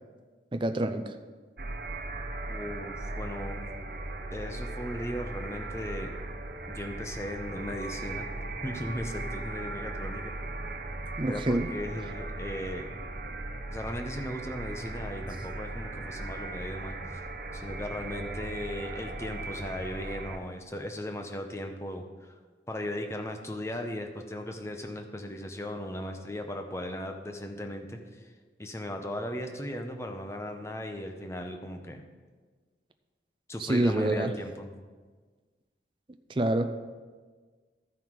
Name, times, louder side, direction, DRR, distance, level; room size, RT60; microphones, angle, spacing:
voice 1, 0.5-1.1 11.2-11.7 33.6-34.3 36.3-36.7, right 1 dB, 30° right, 7 dB, 0.5 m, -27 dB
sound 1, 1.6-20.4, right 2 dB, 55° right, 0.9 m, -38 dB
voice 2, 2.5-3.8 4.3-6.1 6.7-8.3 8.6-10.3 11.3-12.8 13.7-17.2 17.5-22.3 22.7-28.0 28.6-32.0 33.5-34.7, left 1 dB, 15° left, 5 dB, 0.8 m, -37 dB
13.5 x 5.6 x 4.6 m, 1.4 s
head